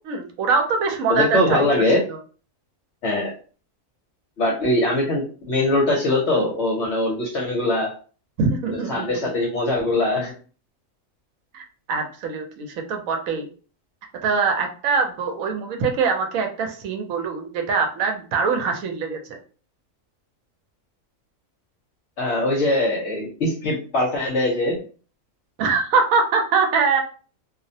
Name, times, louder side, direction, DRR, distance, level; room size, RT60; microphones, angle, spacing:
voice 1, 0.0-2.2 8.4-9.2 11.5-13.5 14.2-19.4 25.6-27.0, right 4 dB, 80° right, 3 dB, 1.0 m, -23 dB
voice 2, 1.1-2.0 3.0-3.3 4.4-7.9 8.7-10.3 22.2-24.8, left 1 dB, 60° left, -2 dB, 0.9 m, -22 dB
2.5 x 2.0 x 2.6 m, 0.39 s
omnidirectional pair, 1.4 m